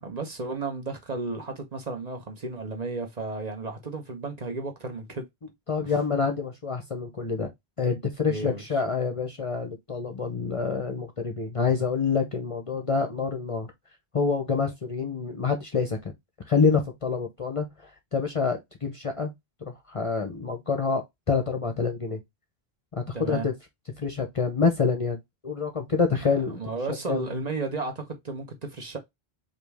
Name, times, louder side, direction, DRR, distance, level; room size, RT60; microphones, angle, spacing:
voice 1, 0.0-5.3 5.8-5.9 8.3-8.8 23.1-23.5 26.2-29.0, right 3 dB, 45° right, 1.0 m, -33 dB
voice 2, 5.7-7.5 7.8-13.7 14.1-16.0 16.5-17.7 18.1-19.3 19.9-21.0 21.3-22.2 22.9-23.5 24.0-25.2 25.4-26.6 27.1-27.2, left 5 dB, 35° left, 0.7 m, -26 dB
5.1 x 2.6 x 3.4 m
omnidirectional pair, 1.0 m